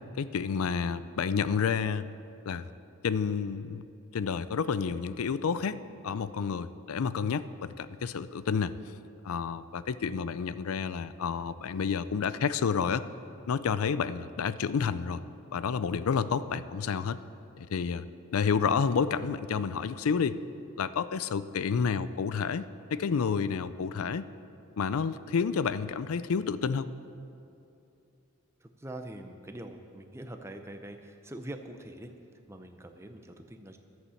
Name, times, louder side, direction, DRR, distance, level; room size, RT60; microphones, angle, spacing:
voice 1, 0.2-2.1 2.5-2.7 3.0-3.8 4.1-5.8 6.0-8.7 9.2-13.0 13.5-15.2 15.5-17.2 17.6-18.1 18.3-20.4 20.8-22.6 22.9-24.2 24.8-26.9, left 6 dB, 85° left, 15 dB, 0.4 m, -30 dB
voice 2, 28.6-32.1 32.5-33.8, right 1 dB, 10° right, 5 dB, 0.6 m, -44 dB
11.0 x 8.3 x 7.1 m, 2.7 s
head